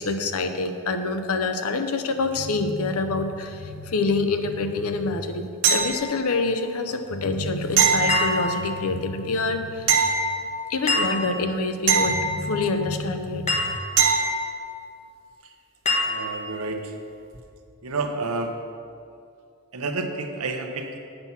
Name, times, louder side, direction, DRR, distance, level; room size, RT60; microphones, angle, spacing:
voice 1, 0.0-10.0 10.7-13.8, left 3 dB, 85° left, 7 dB, 0.6 m, -26 dB
sound 1, 5.6-6.4 7.8-8.8 9.9-10.9 11.9-12.9 14.0-14.6 17.3-17.4, right 5 dB, 60° right, 0.9 m, -23 dB
sound 2, 8.1-9.0 10.9-11.6 13.5-14.2 15.8-16.6, left 1 dB, 30° left, 1.3 m, -27 dB
voice 2, 16.1-16.9 17.8-18.5 19.7-21.0, right 3 dB, 80° right, 4 dB, 0.8 m, -29 dB
7.8 x 5.8 x 5.7 m, 2.4 s
head